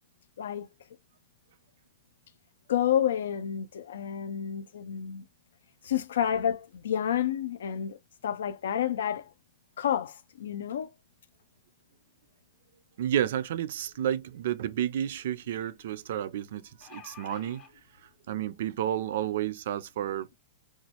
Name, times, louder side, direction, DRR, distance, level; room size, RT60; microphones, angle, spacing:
voice 1, 2.7-5.2 5.8-8.0 8.2-9.3 9.8-10.9, left 9 dB, 85° left, 0.4 m, -29 dB
voice 2, 13.0-17.6 18.0-20.3, right 11 dB, 60° right, 0.3 m, -31 dB
sound 1, 14.4-14.5 14.8-14.9 16.5-17.7 18.6-18.7 19.1-19.2, left 6 dB, 15° left, 0.7 m, -49 dB
3.0 x 2.3 x 2.8 m
supercardioid pair, 165°, 0 cm